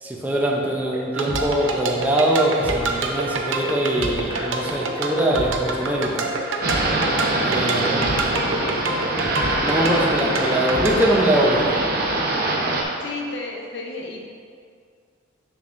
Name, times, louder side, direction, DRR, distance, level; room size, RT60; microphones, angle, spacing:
voice 1, 0.0-6.3 7.4-8.5 9.6-11.8, right 1 dB, 10° right, -3 dB, 0.6 m, -23 dB
sound 1, 0.6-11.2, equal, 30° right, 1.0 m, -33 dB
sound 2, 1.1-11.1, right 3 dB, 80° right, 0.6 m, -27 dB
sound 3, 6.6-12.8, right 2 dB, 50° right, 0.8 m, -23 dB
voice 2, 13.0-14.3, left 3 dB, 65° left, 0 dB, 0.8 m, -32 dB
6.9 x 6.0 x 2.5 m, 2.2 s
head